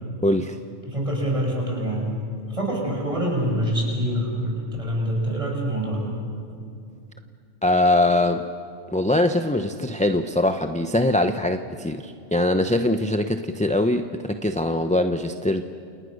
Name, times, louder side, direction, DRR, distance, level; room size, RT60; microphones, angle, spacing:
voice 1, 0.2-0.6 7.6-8.5 8.9-15.6, left 1 dB, 5° left, 7 dB, 0.7 m, -22 dB
voice 2, 0.9-2.1 2.5-6.1, equal, 25° right, -2 dB, 7.0 m, -25 dB
29.0 x 28.5 x 6.6 m, 2.4 s
omnidirectional pair, 1.2 m